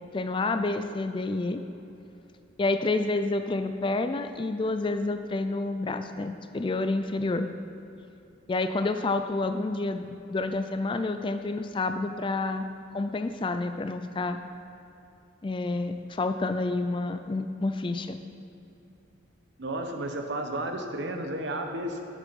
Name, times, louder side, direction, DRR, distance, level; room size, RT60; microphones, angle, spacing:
voice 1, 0.1-1.6 2.6-7.5 8.5-12.7 12.9-14.4 15.4-18.2, left 2 dB, 25° left, 8 dB, 0.3 m, -29 dB
voice 2, 19.6-22.0, right 1 dB, 60° right, 4 dB, 1.0 m, -32 dB
11.0 x 7.3 x 5.3 m, 2.9 s
head